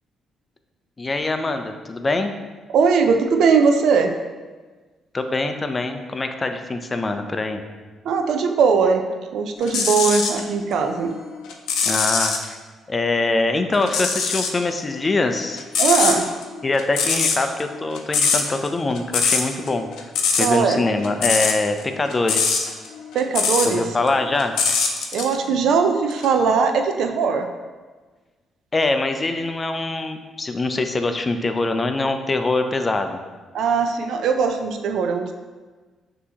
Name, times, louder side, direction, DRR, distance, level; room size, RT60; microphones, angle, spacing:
voice 1, 1.0-2.3 5.1-7.6 11.8-12.6 12.9-15.7 16.6-19.9 20.3-22.7 23.6-24.6 28.7-33.2, left 2 dB, 25° left, 7 dB, 0.4 m, -23 dB
voice 2, 2.7-4.1 8.0-11.1 15.8-16.3 20.4-20.8 23.1-23.9 25.1-27.5 33.5-35.3, right 5 dB, 75° right, 6 dB, 0.4 m, -20 dB
sound 1, 9.6-10.4 10.9-12.5 13.8-14.6 14.9-23.8 24.1-25.3 26.1-26.3, left 5 dB, 80° left, 0.5 m, -22 dB
6.1 x 2.8 x 2.8 m, 1.4 s
cardioid pair, 90°, 0 cm